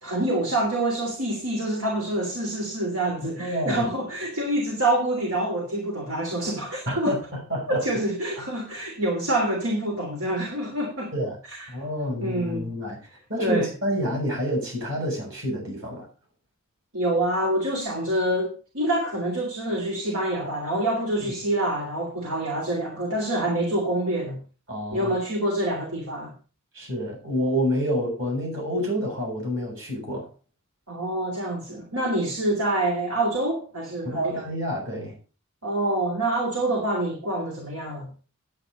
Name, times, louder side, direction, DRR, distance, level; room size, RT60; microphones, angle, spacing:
voice 1, 0.0-7.2 7.7-11.1 12.2-12.6 13.4-13.7 16.9-24.4 24.9-26.3 30.9-34.4 35.6-38.1, right 1 dB, 85° right, 3.1 m, -26 dB
voice 2, 3.4-3.9 6.9-7.8 8.4-8.5 11.1-11.4 11.7-13.0 13.3-16.1 24.7-25.1 26.7-30.3 34.0-35.1, equal, 60° right, 7.7 m, -28 dB
9.9 x 9.2 x 5.4 m
head